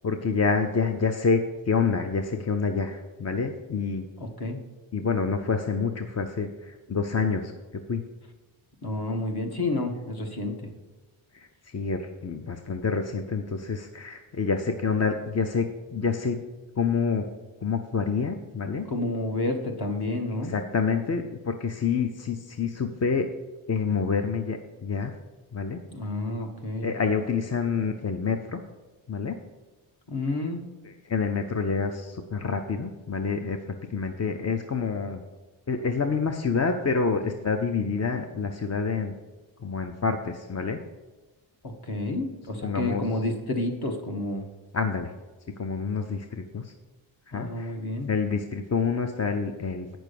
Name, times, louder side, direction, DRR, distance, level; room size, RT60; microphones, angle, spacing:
voice 1, 0.0-4.0 4.9-7.5 7.9-8.0 11.3-11.5 11.7-16.4 16.8-17.3 17.6-18.8 20.5-23.3 23.7-25.1 25.5-25.8 26.8-28.6 29.1-29.4 30.8-35.2 35.7-39.1 39.6-40.8 42.6-43.0 44.7-45.1 45.6-46.7 47.3-47.7 48.1-50.0, left 5 dB, 35° left, 6 dB, 0.6 m, -27 dB
voice 2, 4.2-4.6 8.8-10.7 18.9-20.5 25.9-26.9 30.1-30.6 41.6-44.5 47.3-48.1, left 2 dB, 50° left, 3 dB, 1.6 m, -30 dB
9.0 x 6.2 x 6.9 m, 1.2 s
wide cardioid pair, 145°, 50 cm